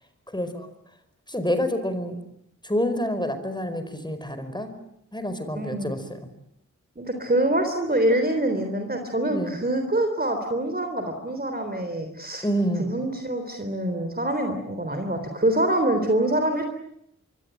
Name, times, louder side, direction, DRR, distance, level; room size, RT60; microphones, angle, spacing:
voice 1, 0.3-0.7 1.3-2.1 2.6-4.7 5.1-6.2 9.3-9.6 12.4-12.9, equal, 15° left, 10 dB, 4.9 m, -27 dB
voice 2, 5.5-5.9 7.0-12.5 12.8-16.6, right 1 dB, 30° right, 5 dB, 3.7 m, -25 dB
26.0 x 24.0 x 9.2 m, 0.75 s
wide cardioid pair, 60°, 31 cm